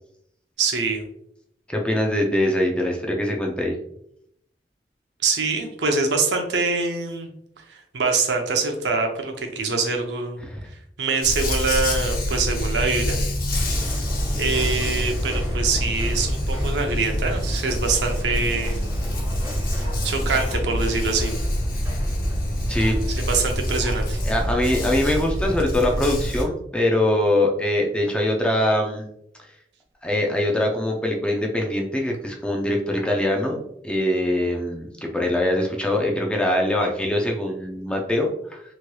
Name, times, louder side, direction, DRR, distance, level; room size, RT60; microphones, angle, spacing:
voice 1, 0.6-1.0 5.2-7.3 7.7-10.4 11.0-13.2 13.9-14.1 14.4-18.9 20.0-21.3 23.3-24.2, right 4 dB, 75° right, 3 dB, 0.6 m, -24 dB
voice 2, 1.7-3.8 10.4-10.6 22.7-23.0 24.3-29.1 30.0-38.6, left 1 dB, 5° left, 0 dB, 0.4 m, -23 dB
Dog, 11.2-26.4, equal, 55° left, 0.7 m, -25 dB
sound 1, 13.5-24.9, equal, 15° right, 0.8 m, -37 dB
3.1 x 2.9 x 2.2 m, 0.74 s
head